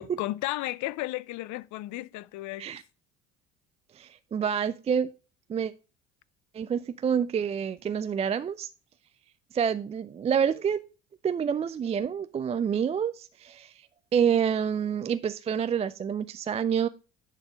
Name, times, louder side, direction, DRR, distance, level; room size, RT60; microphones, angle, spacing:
voice 1, 0.0-2.8, left 17 dB, 55° left, 0.6 m, -34 dB
voice 2, 3.9-5.1 5.5-5.7 6.5-8.7 9.5-10.8 11.2-13.9 14.1-16.9, right 7 dB, 20° right, 0.3 m, -28 dB
10.5 x 3.8 x 5.0 m
hypercardioid pair, 65°, 36 cm